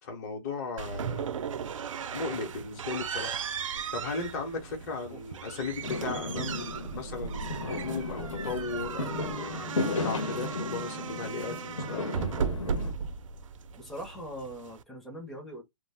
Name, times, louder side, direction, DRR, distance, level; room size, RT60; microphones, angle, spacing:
voice 1, 0.0-1.3 2.1-3.4 3.9-12.2, left 4 dB, 30° left, 0.8 m, -36 dB
sound 1, 0.8-14.8, right 6 dB, 80° right, 0.4 m, -36 dB
Fireworks, 5.8-12.9, left 2 dB, 85° left, 1.1 m, -35 dB
voice 2, 13.8-15.6, equal, ahead, 0.5 m, -41 dB
2.3 x 2.1 x 3.3 m
hypercardioid pair, 165°, 16 cm